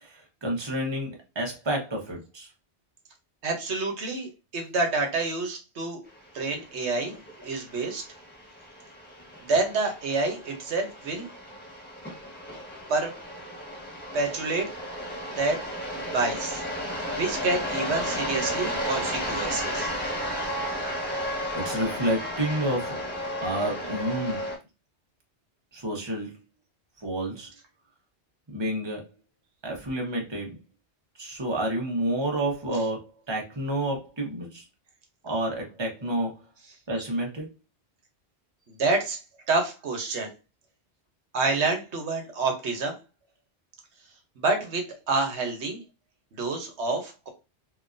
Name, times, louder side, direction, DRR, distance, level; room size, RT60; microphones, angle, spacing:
voice 1, 0.0-2.5 21.5-23.0 23.4-24.4 25.7-26.3 27.0-27.5 28.5-29.0 29.6-30.6 31.2-34.6 35.2-36.4 36.9-37.5, right 1 dB, 25° right, 0 dB, 1.0 m, -29 dB
voice 2, 3.4-6.0 6.3-7.2 7.4-8.0 9.4-11.3 12.9-13.1 14.1-14.7 15.4-15.6 16.1-16.6 17.1-19.9 38.8-39.2 39.5-40.3 41.3-42.9 44.4-45.8 46.4-47.3, right 3 dB, 80° right, 4 dB, 1.2 m, -28 dB
sound 1, 6.2-24.6, equal, 10° left, 1.3 m, -33 dB
3.7 x 2.9 x 2.5 m, 0.28 s
omnidirectional pair, 1.1 m